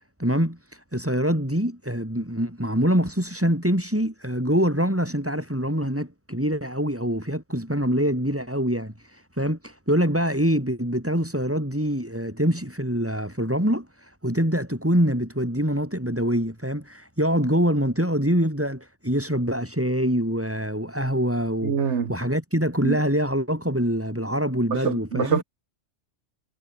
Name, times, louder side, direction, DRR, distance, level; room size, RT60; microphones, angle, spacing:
voice 1, 0.2-25.4, equal, 10° right, 5.4 m, -25 dB
voice 2, 21.6-22.1 22.8-23.0 24.7-25.4, right 6 dB, 70° right, 1.7 m, -25 dB
omnidirectional pair, 1.3 m